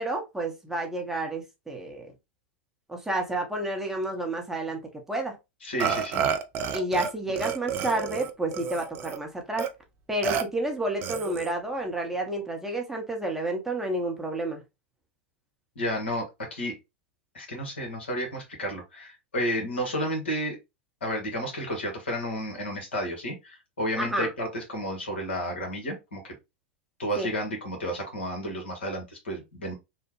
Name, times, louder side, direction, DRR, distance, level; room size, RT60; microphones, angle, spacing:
voice 1, 0.0-2.1 2.9-4.8 5.1-5.4 6.7-9.7 10.1-14.6 24.0-24.3 27.2-27.3, right 1 dB, 5° right, 0.7 m, -30 dB
voice 2, 5.6-6.3 15.7-16.8 17.3-20.6 21.0-26.3 27.0-29.7, equal, 70° left, 1.3 m, -32 dB
Burping eructation, 5.8-7.1 7.4-9.2 9.6-9.7 10.2-10.4 11.0-11.5, right 7 dB, 35° right, 0.4 m, -30 dB
3.2 x 2.1 x 3.0 m
figure-of-eight pair, 90°, 6 cm